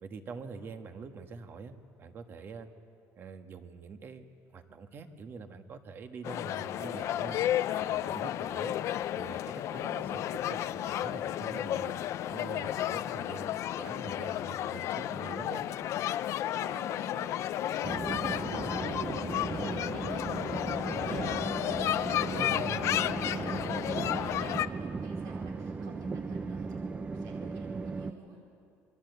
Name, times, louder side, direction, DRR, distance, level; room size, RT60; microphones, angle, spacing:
voice 1, 0.0-2.7 3.2-7.4 7.9-8.8 9.1-11.9 12.2-15.6 22.3-22.9, right 4 dB, 35° right, 7 dB, 1.5 m, -45 dB
sound 1, 6.2-24.7, left 12 dB, 50° left, 0.6 m, -32 dB
voice 2, 16.3-17.4 17.7-28.4, right 3 dB, 85° right, -1 dB, 4.7 m, -48 dB
sound 2, 17.8-28.1, right 4 dB, 20° right, 0.6 m, -36 dB
27.5 x 22.5 x 8.1 m, 2.3 s
cardioid pair, 165°, 6 cm